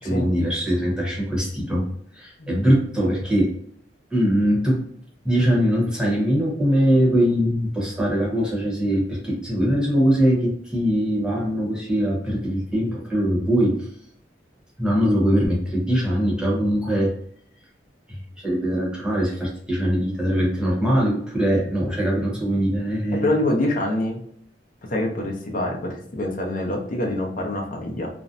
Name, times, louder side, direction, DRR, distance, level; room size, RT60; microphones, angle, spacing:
voice 1, 0.0-1.9 2.1-3.5 4.1-4.9 5.2-13.9 14.8-17.1 18.1-23.3, equal, 5° right, -4 dB, 0.8 m, -22 dB
voice 2, 23.2-24.2 24.9-28.1, left 1 dB, 50° left, 1 dB, 0.6 m, -25 dB
2.5 x 2.1 x 2.5 m, 0.66 s
head